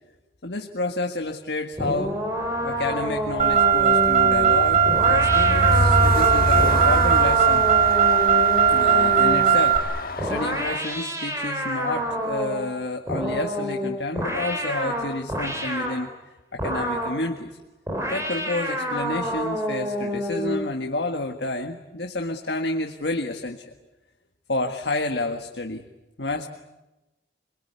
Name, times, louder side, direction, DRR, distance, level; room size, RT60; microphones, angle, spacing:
voice 1, 0.4-2.2 2.6-7.7 8.7-9.8 10.2-16.1 16.5-17.6 18.1-23.7 24.5-25.8 26.2-26.5, left 2 dB, 75° left, 4 dB, 1.7 m, -29 dB
sound 1, 1.8-9.6 10.2-12.7 13.1-16.0 16.6-17.2 17.9-20.7, equal, 15° right, 4.4 m, -28 dB
Train, 2.4-10.8, left 1 dB, 50° left, 1.5 m, -28 dB
Car, 3.4-9.8, right 7 dB, 40° right, 3.2 m, -18 dB
26.0 x 22.5 x 9.6 m, 1.0 s
head